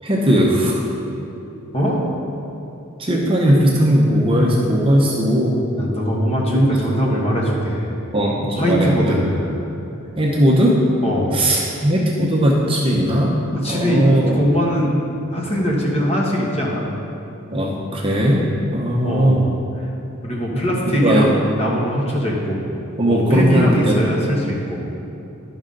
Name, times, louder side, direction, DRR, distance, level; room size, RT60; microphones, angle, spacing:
voice 1, 0.0-0.8 3.0-5.6 6.5-6.8 8.1-9.1 10.2-10.8 11.3-13.3 13.7-14.4 17.5-18.4 18.7-19.4 20.5-21.3 23.0-24.3, equal, 25° right, -3 dB, 0.8 m, -18 dB
voice 2, 1.7-2.0 5.8-7.9 8.5-9.6 11.0-11.4 13.5-15.0 15.3-16.8 19.0-19.9 20.2-22.6 23.1-24.8, equal, 30° left, -4 dB, 1.3 m, -21 dB
11.0 x 5.5 x 3.8 m, 2.8 s
head